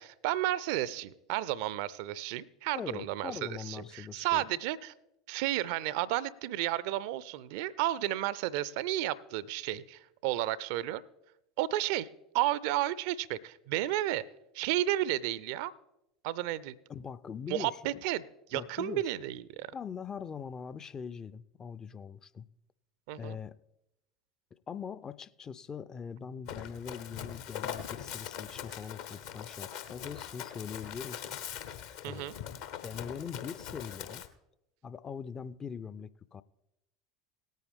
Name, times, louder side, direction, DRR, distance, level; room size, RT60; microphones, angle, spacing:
voice 1, 0.0-4.9 5.3-11.0 11.6-12.1 12.3-14.3 14.5-15.7 16.2-16.7 17.5-18.2 18.5-19.7 23.1-23.4 32.0-32.3, right 14 dB, 55° right, 0.4 m, -32 dB
voice 2, 2.7-4.5 16.9-18.0 18.5-19.1 19.7-22.5 23.2-23.6 24.5-31.4 32.1-32.3 32.8-34.2 34.8-36.4, left 6 dB, 25° left, 0.4 m, -42 dB
Run, 26.5-34.3, left 9 dB, 60° left, 0.9 m, -42 dB
18.0 x 9.1 x 3.6 m
figure-of-eight pair, 75°, 2 cm